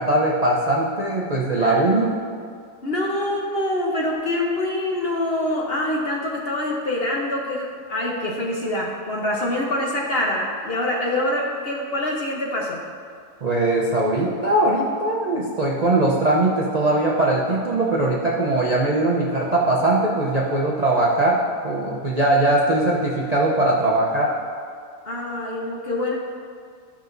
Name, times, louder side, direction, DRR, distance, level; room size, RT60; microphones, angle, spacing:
voice 1, 0.0-2.1 13.4-21.4 21.6-24.3, right 2 dB, 40° right, -4 dB, 0.5 m, -20 dB
voice 2, 2.8-12.8 25.0-26.1, left 1 dB, 45° left, -2 dB, 0.9 m, -25 dB
13.0 x 6.1 x 2.6 m, 2.2 s
omnidirectional pair, 1.7 m